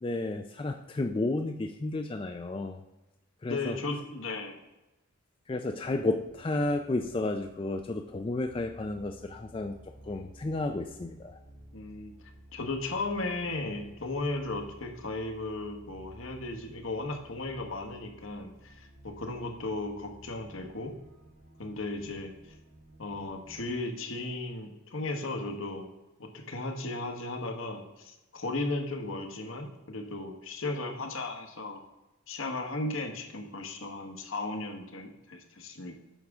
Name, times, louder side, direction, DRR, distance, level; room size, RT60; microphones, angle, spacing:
voice 1, 0.0-2.8 3.4-3.8 5.5-9.8 10.1-11.4, left 2 dB, 25° left, 5 dB, 0.3 m, -32 dB
voice 2, 3.5-4.6 11.7-12.1 12.5-20.9 21.6-22.3 23.0-25.9 26.2-31.8 32.3-35.9, left 2 dB, 65° left, 5 dB, 1.1 m, -35 dB
sound 1, 5.7-23.7, right 1 dB, 70° right, 1.8 m, -54 dB
9.0 x 6.3 x 3.5 m, 0.99 s
head